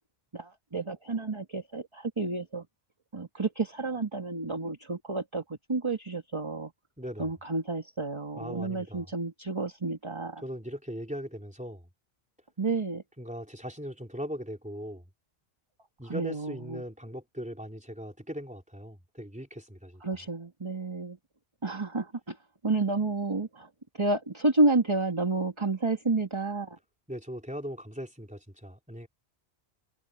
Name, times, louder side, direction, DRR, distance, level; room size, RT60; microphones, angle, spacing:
voice 1, 0.3-2.6 3.1-6.7 7.2-10.4 12.6-13.0 16.1-16.8 20.0-21.2 21.6-22.4 22.6-23.7 23.9-26.8, right 3 dB, 25° right, 1.7 m, -30 dB
voice 2, 7.0-7.3 8.3-9.1 10.4-11.9 13.2-15.1 16.0-20.0 27.1-29.1, equal, 5° right, 3.5 m, -39 dB
omnidirectional pair, 1.1 m